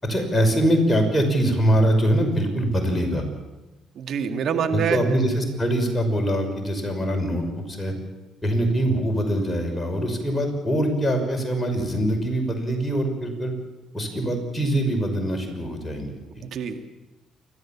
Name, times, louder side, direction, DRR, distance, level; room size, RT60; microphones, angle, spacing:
voice 1, 0.0-3.2 4.7-7.9 8.4-13.5 13.9-16.4, right 1 dB, 15° left, 2 dB, 5.9 m, -23 dB
voice 2, 4.0-5.0 16.4-16.9, right 7 dB, 60° right, 6 dB, 2.1 m, -26 dB
29.5 x 13.5 x 7.4 m, 1.1 s
supercardioid pair, 70°, 0 cm